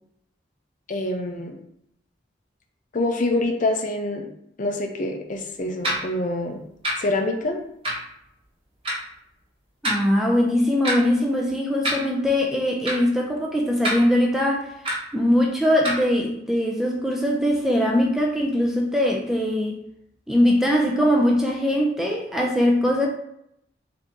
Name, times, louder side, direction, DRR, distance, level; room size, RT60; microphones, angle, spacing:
voice 1, 0.9-1.6 2.9-4.3 4.6-6.6 7.0-7.6, left 2 dB, 45° left, 3 dB, 0.6 m, -26 dB
sound 1, 5.8-6.0 6.8-7.0 7.8-8.0 8.8-9.0 9.8-10.0 10.8-11.0 11.8-12.0 12.8-13.0 13.8-13.9 14.8-15.0 15.8-16.0, equal, 30° right, 1.0 m, -24 dB
voice 2, 9.8-14.7 15.1-19.8 20.3-23.1, left 1 dB, ahead, -1 dB, 0.5 m, -21 dB
3.8 x 2.8 x 3.6 m, 0.75 s
head